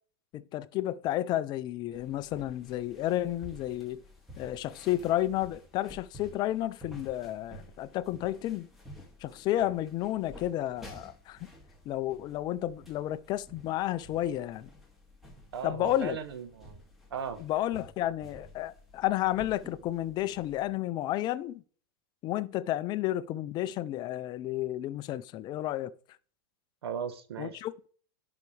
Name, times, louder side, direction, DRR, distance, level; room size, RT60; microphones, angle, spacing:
voice 1, 0.3-4.0 4.4-8.7 9.2-11.5 11.9-14.7 15.6-16.2 17.4-21.6 22.2-25.9 27.4-27.9, left 14 dB, 35° left, 0.5 m, -31 dB
sound 1, 1.9-20.7, equal, ahead, 2.2 m, -52 dB
voice 2, 15.5-16.8 17.1-17.4 26.8-27.6, right 7 dB, 85° right, 1.2 m, -37 dB
10.5 x 5.8 x 3.2 m
hypercardioid pair, 125°, 13 cm